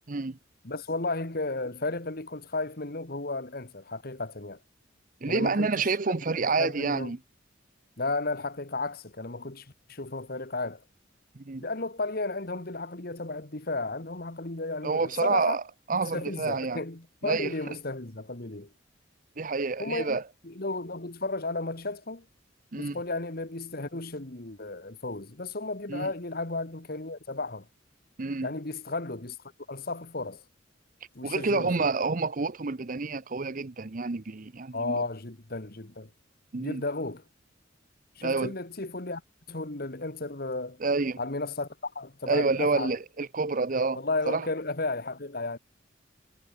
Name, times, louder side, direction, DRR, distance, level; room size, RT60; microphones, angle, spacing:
voice 1, 0.1-0.4 5.2-7.2 11.3-11.7 14.8-15.6 15.9-16.8 17.2-17.7 19.4-20.2 22.7-23.0 25.9-26.1 28.2-28.5 31.2-35.0 36.5-36.8 38.2-38.5 40.8-41.2 42.3-44.5, right 4 dB, 45° right, 0.7 m, -28 dB
voice 2, 0.6-4.6 5.3-5.9 6.4-7.1 8.0-10.8 11.6-15.6 16.1-18.7 19.8-22.3 22.8-27.7 28.4-29.4 29.7-30.4 31.2-31.9 34.7-36.1 36.6-37.2 38.2-39.2 39.5-40.8 41.2-42.9 43.9-45.6, left 2 dB, 50° left, 1.9 m, -34 dB
head